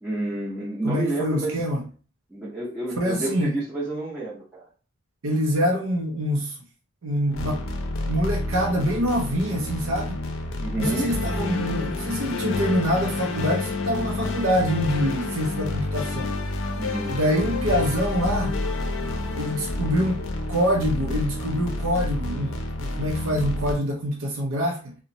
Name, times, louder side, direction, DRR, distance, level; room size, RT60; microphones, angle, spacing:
voice 1, 0.0-1.6 2.3-4.7 10.6-11.2 16.8-17.2, right 2 dB, 10° right, 0.6 m, -29 dB
voice 2, 0.8-1.8 3.0-3.6 5.2-6.6 7.0-7.7 8.0-10.2 10.8-16.4 17.1-18.6 19.4-20.2 20.5-25.0, equal, 80° right, 0.5 m, -25 dB
sound 1, 7.3-23.7, left 2 dB, 75° left, 0.5 m, -29 dB
2.8 x 2.1 x 2.5 m
head